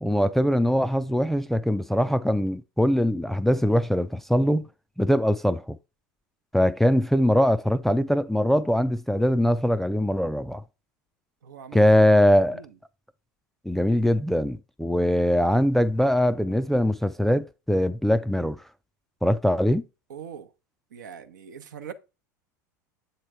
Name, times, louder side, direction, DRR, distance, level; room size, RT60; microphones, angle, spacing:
voice 1, 0.0-4.7 5.0-5.8 6.5-10.6 11.7-12.6 13.6-18.6 19.2-19.8, equal, ahead, 0.3 m, -22 dB
voice 2, 11.4-12.1 12.5-12.7 20.1-20.5 20.9-21.9, right 8 dB, 75° right, 0.7 m, -41 dB
7.9 x 3.0 x 4.6 m
figure-of-eight pair, 80°, 10 cm